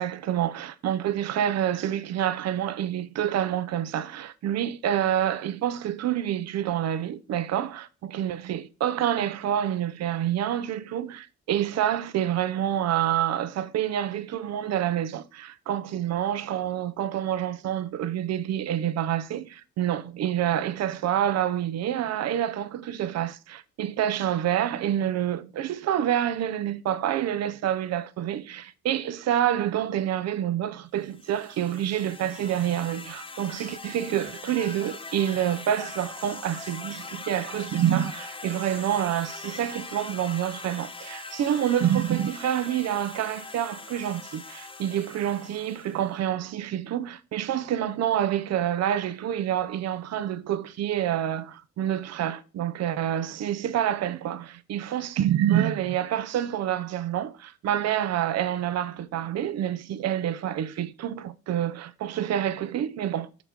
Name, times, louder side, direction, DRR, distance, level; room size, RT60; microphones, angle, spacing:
voice 1, 0.0-63.3, right 11 dB, 60° right, 0.6 m, -27 dB
sound 1, 31.1-46.1, left 3 dB, 20° left, 0.6 m, -41 dB
5.9 x 3.7 x 5.9 m
cardioid pair, 90°, 30 cm